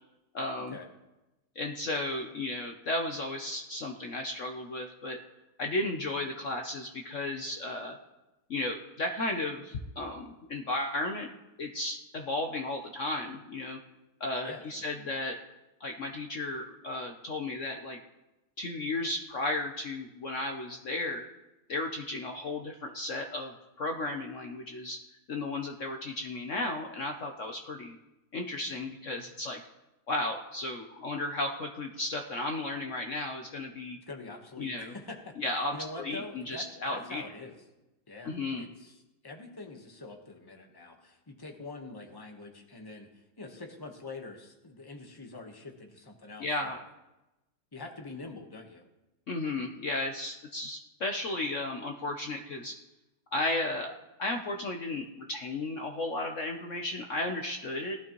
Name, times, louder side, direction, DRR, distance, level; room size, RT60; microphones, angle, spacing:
voice 1, 0.3-0.8 1.6-5.2 5.6-8.0 8.5-11.3 11.6-13.8 14.2-15.4 15.8-18.0 18.6-21.3 21.7-25.0 25.3-28.0 28.3-29.6 30.1-34.0 34.6-34.9 35.4-37.2 38.2-38.7 46.4-46.8 49.3-52.7 53.3-58.0, left 2 dB, 60° left, 3 dB, 0.8 m, -34 dB
voice 2, 14.4-14.9 34.1-35.3 35.7-37.5 38.1-39.0 39.2-43.1 43.4-46.8 47.7-48.8, left 3 dB, 15° left, 3 dB, 0.9 m, -45 dB
19.0 x 12.0 x 3.0 m, 1.0 s
omnidirectional pair, 2.2 m